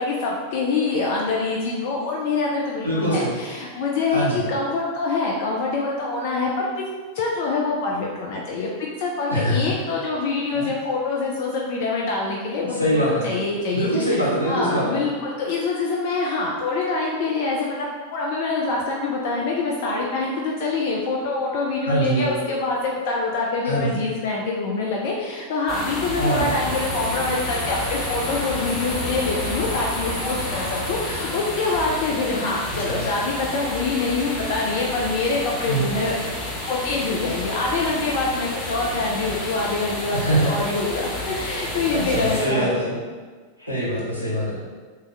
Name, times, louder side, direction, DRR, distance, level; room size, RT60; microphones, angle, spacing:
voice 1, 0.0-6.7 7.1-8.7 9.0-36.1 36.6-42.8, left 3 dB, 50° left, -2 dB, 0.4 m, -25 dB
voice 2, 2.8-3.4 4.1-4.5 9.3-9.8 10.5-10.7 12.5-13.3 13.7-15.0 21.8-22.3 23.6-24.0 26.2-26.5 32.8-33.0 35.7-35.9 40.1-40.6 41.9-42.9 43.6-44.6, right 1 dB, 85° left, -6 dB, 1.0 m, -23 dB
sound 1, 25.7-42.5, left 1 dB, 15° left, 1.0 m, -31 dB
sound 2, 26.3-31.9, left 1 dB, 65° left, 1.0 m, -31 dB
3.3 x 2.7 x 3.2 m, 1.5 s
figure-of-eight pair, 90°, 0 cm